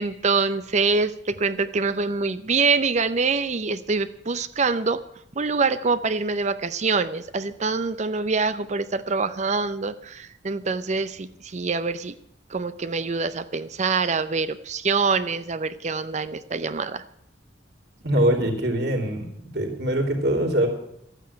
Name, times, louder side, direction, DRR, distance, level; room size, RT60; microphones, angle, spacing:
voice 1, 0.0-5.0 5.4-12.1 12.5-17.0, right 4 dB, 40° right, 13 dB, 0.6 m, -25 dB
voice 2, 18.0-19.3 19.5-20.7, right 1 dB, 60° right, 3 dB, 3.3 m, -23 dB
13.0 x 9.1 x 8.6 m, 0.74 s
head